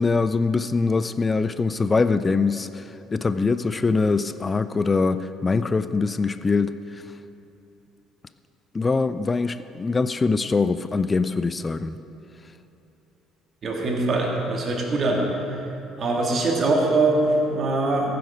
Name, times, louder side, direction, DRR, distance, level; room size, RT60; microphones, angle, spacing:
voice 1, 0.0-7.0 8.7-12.0, left 4 dB, 25° left, 13 dB, 0.4 m, -23 dB
voice 2, 13.6-15.6 16.0-18.1, right 2 dB, 45° right, 0 dB, 2.2 m, -22 dB
15.0 x 7.8 x 5.1 m, 2.9 s
figure-of-eight pair, 50°, 0 cm